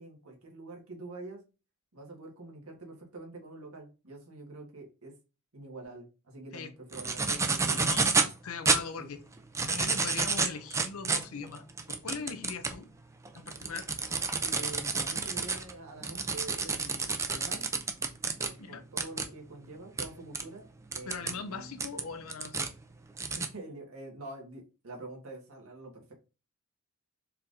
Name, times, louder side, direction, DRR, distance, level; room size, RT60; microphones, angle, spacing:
voice 1, 0.0-1.4 1.9-5.1 5.5-7.2 7.5-7.9 9.0-9.1 14.4-17.7 18.4-21.7 23.3-26.1, right 2 dB, 85° right, 1.6 m, -46 dB
sound 1, 6.9-8.3 8.7-8.8 9.4-12.8 13.3-18.5 19.0-19.2 20.0-20.1 20.3-20.4 20.9-21.3 21.8-22.7 23.2-23.5, right 4 dB, 15° right, 0.4 m, -29 dB
voice 2, 7.7-8.1 8.4-9.2 9.6-12.9 13.3-13.9 18.6-18.8 21.1-22.7, left 5 dB, 90° left, 0.6 m, -40 dB
4.4 x 3.8 x 2.6 m
head